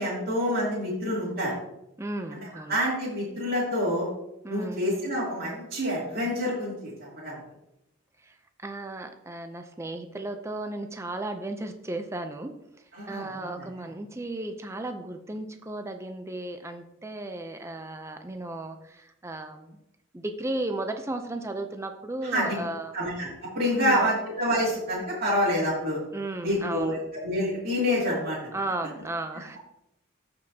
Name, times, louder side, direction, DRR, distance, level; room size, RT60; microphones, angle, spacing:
voice 1, 0.0-1.5 2.3-2.4 2.7-4.1 4.5-7.4 12.9-13.6 22.3-22.5 22.9-23.3 23.5-26.0 26.4-27.0 27.2-28.4, equal, 45° right, -8 dB, 2.9 m, -27 dB
voice 2, 2.0-2.8 4.4-4.8 8.2-19.8 20.1-23.0 23.7-24.1 26.1-27.0 28.5-29.6, right 2 dB, 15° right, 6 dB, 0.5 m, -35 dB
14.0 x 5.3 x 2.8 m, 0.87 s
head